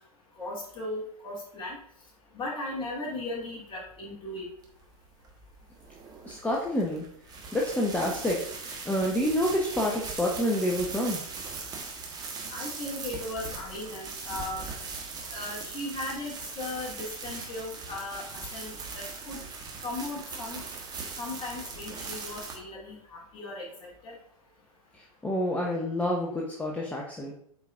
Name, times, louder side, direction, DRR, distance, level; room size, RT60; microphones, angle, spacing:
voice 1, 0.4-1.8 2.3-4.5 12.5-14.7 15.3-18.2 18.5-19.4 19.8-20.6 21.2-24.2, left 2 dB, 25° left, -4 dB, 2.5 m, -37 dB
sound 1, 4.6-22.6, right 4 dB, 20° right, 1.3 m, -40 dB
voice 2, 6.2-7.0 7.5-11.2 24.9-27.3, left 1 dB, 5° left, -3 dB, 0.8 m, -28 dB
8.0 x 4.6 x 2.6 m, 0.66 s
figure-of-eight pair, 100°, 19 cm